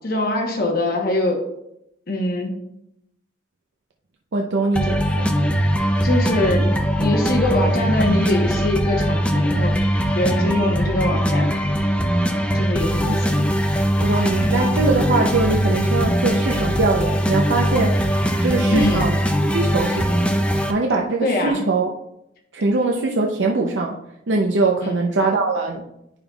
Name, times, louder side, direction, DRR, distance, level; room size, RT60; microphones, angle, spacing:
voice 1, 0.0-1.4 2.1-2.6 6.0-6.7 7.0-11.5 12.5-13.5 18.7-19.0 21.2-21.6 24.8-25.0, left 1 dB, 55° left, 1 dB, 1.1 m, -23 dB
voice 2, 4.3-5.3 13.0-13.2 14.0-19.2 19.5-21.9 22.5-24.0 24.3-25.8, right 3 dB, 85° right, 1 dB, 0.6 m, -22 dB
sound 1, 4.7-20.7, equal, 5° left, 0.5 m, -20 dB
10.5 x 5.3 x 2.4 m, 0.81 s
head